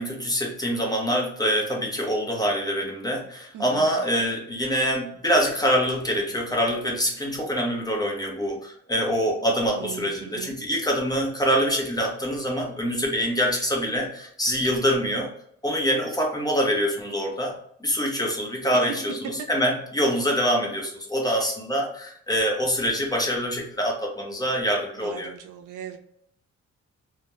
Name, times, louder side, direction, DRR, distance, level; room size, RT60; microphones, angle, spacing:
voice 1, 0.0-15.3 15.6-19.2 19.5-25.3, equal, 15° left, 0 dB, 0.7 m, -25 dB
voice 2, 3.5-4.0 9.7-10.6 18.8-18.9 21.2-21.5 25.0-26.0, right 9 dB, 85° right, 5 dB, 0.5 m, -39 dB
2.3 x 2.1 x 3.0 m, 0.66 s
cardioid pair, 120°, 30 cm